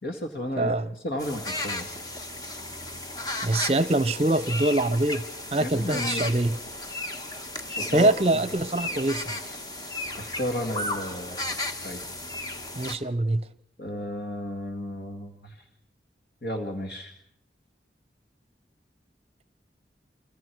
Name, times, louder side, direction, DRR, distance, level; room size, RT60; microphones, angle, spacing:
voice 1, 0.0-1.9 5.6-6.3 7.8-8.1 10.2-11.4 11.8-12.0 13.8-15.6 16.4-17.1, left 1 dB, 60° left, 3 dB, 1.9 m, -33 dB
voice 2, 0.6-0.9 3.4-5.2 5.5-6.5 7.9-9.4 12.8-13.4, right 2 dB, 35° right, 15 dB, 0.8 m, -24 dB
sound 1, 1.2-13.0, left 2 dB, 20° left, 1.2 m, -34 dB
29.5 x 24.0 x 4.6 m, 0.73 s
head